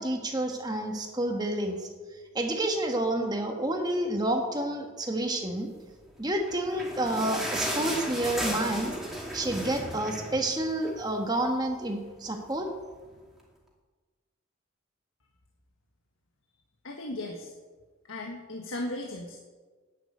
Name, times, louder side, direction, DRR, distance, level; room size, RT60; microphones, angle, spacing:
voice 1, 0.0-1.8 2.3-5.7 6.2-8.9 9.3-12.7, right 1 dB, 20° right, 3 dB, 1.4 m, -29 dB
sound 1, 6.3-11.1 11.4-11.5 11.8-12.0 12.7-12.8, equal, ahead, 2.6 m, -35 dB
voice 2, 16.8-17.5 18.1-19.4, left 1 dB, 85° left, 1 dB, 1.6 m, -36 dB
11.0 x 9.2 x 9.0 m, 1.4 s
head